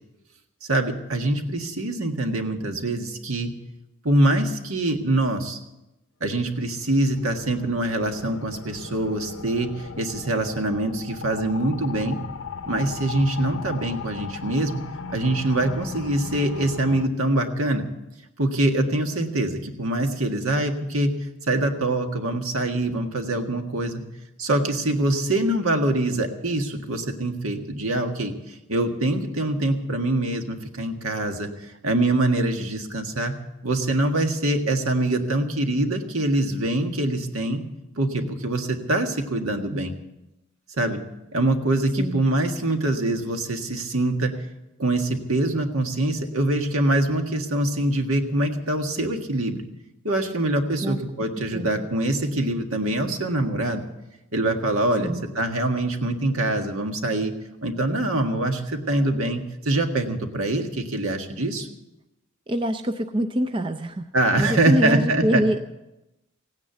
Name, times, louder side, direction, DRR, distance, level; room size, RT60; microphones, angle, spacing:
voice 1, 0.7-3.5 4.0-5.6 6.2-12.2 12.7-14.8 15.1-17.9 18.4-21.1 21.5-24.0 24.4-33.3 33.6-37.6 38.0-39.9 40.7-41.0 41.3-44.3 44.8-49.7 50.0-53.8 54.3-57.3 57.6-61.7 64.1-65.4, right 1 dB, 70° right, 4 dB, 1.7 m, -24 dB
sound 1, 6.5-17.1, left 5 dB, 60° left, 0.7 m, -38 dB
voice 2, 51.5-51.9 55.0-55.3 62.5-64.1 64.4-65.6, equal, 20° right, 7 dB, 0.5 m, -25 dB
16.5 x 9.8 x 8.2 m, 0.94 s
head